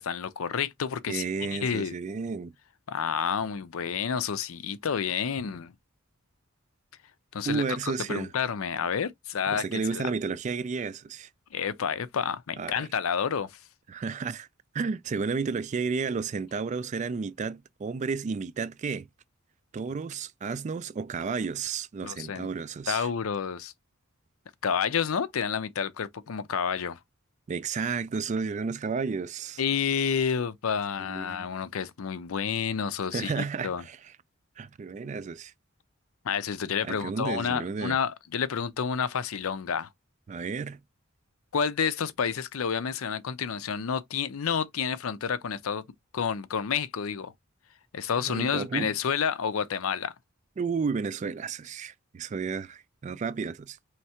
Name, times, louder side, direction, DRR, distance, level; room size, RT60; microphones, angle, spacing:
voice 1, 0.0-1.2 1.5-2.0 2.9-5.7 7.3-7.6 8.1-9.6 9.9-10.1 11.5-13.6 22.0-22.5 22.9-23.7 24.6-27.0 29.6-33.8 36.2-39.9 41.5-45.8 46.1-47.3 47.9-50.1, left 7 dB, 85° left, 0.5 m, -29 dB
voice 2, 1.1-2.5 7.5-8.3 9.5-11.3 12.6-12.7 13.9-14.5 14.7-19.1 19.7-23.1 27.5-29.6 31.0-31.5 33.1-34.0 34.6-35.5 36.8-38.0 40.3-40.8 48.3-48.9 50.6-53.8, right 5 dB, 35° right, 0.3 m, -32 dB
4.5 x 3.2 x 2.8 m
head